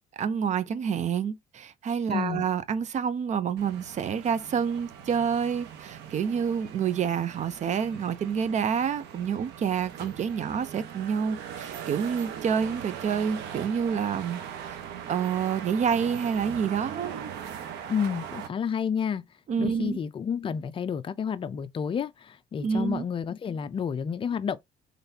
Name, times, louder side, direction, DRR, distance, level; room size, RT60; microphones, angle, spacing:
voice 1, 0.2-14.4 14.7-14.8 15.1-17.1 19.5-20.0 22.6-23.1, right 7 dB, 45° right, 0.6 m, -28 dB
voice 2, 2.1-2.4 17.9-19.2 19.6-24.6, left 7 dB, 30° left, 0.5 m, -30 dB
sound 1, 3.6-18.5, right 8 dB, 85° right, 0.9 m, -40 dB
4.0 x 3.3 x 2.7 m
cardioid pair, 110°, 17 cm